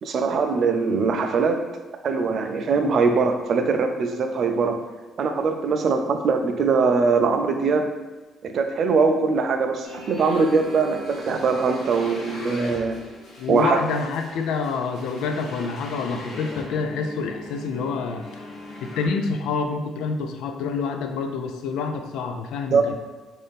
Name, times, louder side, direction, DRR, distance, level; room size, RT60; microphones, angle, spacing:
voice 1, 0.0-1.6 2.0-4.8 5.2-8.0 8.4-13.0 13.5-13.8 22.7-22.8, right 4 dB, 40° right, 6 dB, 0.3 m, -22 dB
sound 1, 9.8-19.1, left 1 dB, 45° left, 0.9 m, -39 dB
voice 2, 13.4-18.3 18.8-22.9, left 4 dB, 90° left, 6 dB, 0.4 m, -27 dB
3.4 x 2.5 x 4.0 m, 1.3 s
cardioid pair, 180°, 0 cm